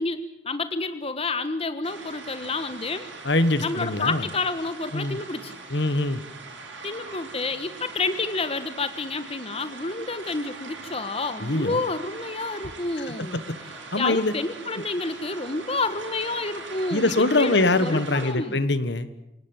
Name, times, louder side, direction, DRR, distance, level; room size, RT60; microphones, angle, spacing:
voice 1, 0.0-3.1 3.6-5.6 6.8-13.4 14.0-18.6, left 3 dB, 30° left, 11 dB, 1.4 m, -29 dB
sound 1, 1.8-18.3, right 3 dB, 75° right, 7.5 m, -41 dB
voice 2, 3.2-4.2 4.9-5.2 5.7-6.2 11.4-11.8 13.1-13.4 13.9-14.3 16.9-19.1, left 2 dB, 60° left, 13 dB, 1.5 m, -23 dB
27.0 x 18.5 x 9.0 m, 0.88 s
head